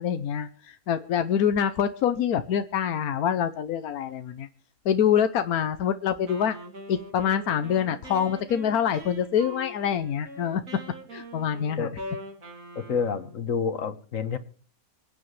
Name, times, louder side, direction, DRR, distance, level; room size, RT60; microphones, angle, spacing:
voice 1, 0.0-4.5 4.8-6.6 6.9-10.6 11.1-11.9, left 8 dB, 90° left, 10 dB, 1.3 m, -25 dB
Wind instrument woodwind instrument, 6.3-13.4, equal, 65° right, 3.2 m, -42 dB
voice 2, 12.7-14.4, left 6 dB, 65° left, 11 dB, 1.6 m, -28 dB
26.0 x 8.7 x 3.2 m, 0.41 s
omnidirectional pair, 1.5 m